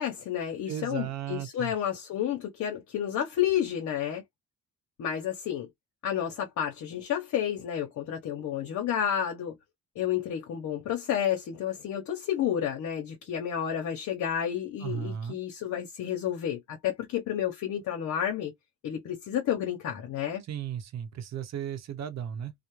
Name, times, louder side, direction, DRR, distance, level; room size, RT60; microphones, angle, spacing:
voice 1, 0.0-4.2 5.0-5.7 6.0-9.6 10.0-18.5 18.8-20.4, left 10 dB, 70° left, 0.7 m, -31 dB
voice 2, 0.7-1.7 14.8-15.4 20.5-22.5, right 9 dB, 60° right, 0.8 m, -35 dB
2.4 x 2.0 x 3.0 m
cardioid pair, 90°, 30 cm